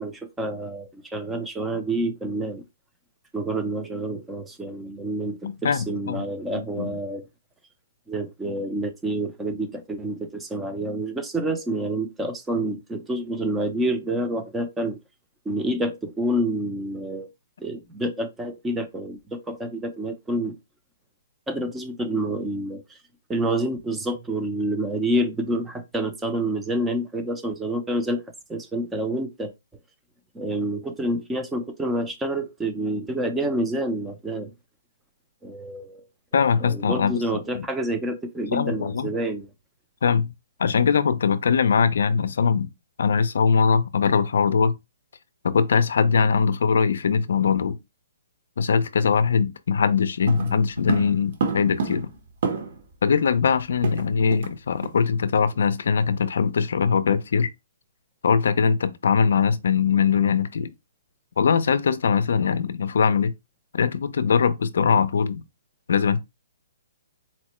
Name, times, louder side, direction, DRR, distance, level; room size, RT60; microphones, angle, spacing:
voice 1, 0.0-2.6 3.3-7.3 8.1-15.0 15.5-17.3 17.6-20.6 21.5-23.0 23.3-28.2 28.5-29.5 30.3-34.5 35.4-36.0 36.6-39.5, right 1 dB, 10° right, 0.5 m, -28 dB
voice 2, 5.4-6.2 6.5-6.9 36.3-37.2 37.5-37.7 38.5-39.1 40.0-40.3 40.6-42.7 43.0-44.8 45.4-47.8 48.6-52.1 53.0-57.5 58.2-60.7 61.4-63.3 63.7-65.4 65.9-66.2, left 6 dB, 70° left, 0.4 m, -21 dB
sound 1, 50.3-52.9 53.2-53.3 53.5-54.6 54.8-55.0 55.4-55.6, right 4 dB, 50° right, 1.0 m, -29 dB
4.1 x 2.1 x 3.0 m
hypercardioid pair, 155°, 0 cm